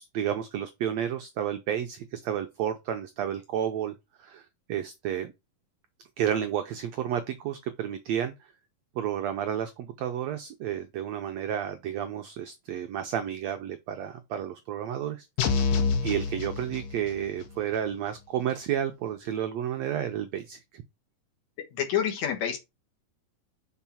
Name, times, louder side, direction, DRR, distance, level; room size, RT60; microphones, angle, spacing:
voice 1, 0.0-3.9 4.2-5.3 6.2-8.3 8.9-15.3 16.0-20.8, right 10 dB, 85° right, 1.5 m, -31 dB
sound 1, 15.4-17.3, left 5 dB, 80° left, 2.8 m, -27 dB
voice 2, 21.7-22.6, left 9 dB, 60° left, 2.4 m, -27 dB
5.9 x 4.6 x 5.6 m
omnidirectional pair, 3.9 m